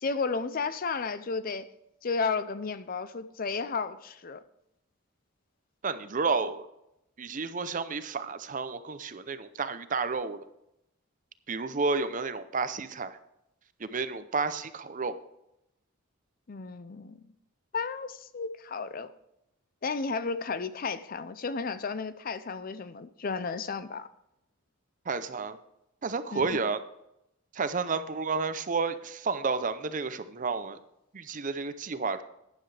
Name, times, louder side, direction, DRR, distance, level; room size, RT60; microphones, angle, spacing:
voice 1, 0.0-1.7 2.0-4.4 16.5-17.2 17.7-19.1 19.8-24.1 26.3-26.4, left 4 dB, 45° left, 13 dB, 0.5 m, -33 dB
voice 2, 5.8-6.7 7.2-10.4 11.5-13.2 13.8-15.2 25.1-25.6 26.0-26.8 27.5-30.8 31.1-32.2, right 4 dB, 40° right, 12 dB, 0.6 m, -31 dB
12.0 x 9.9 x 3.4 m, 0.83 s
head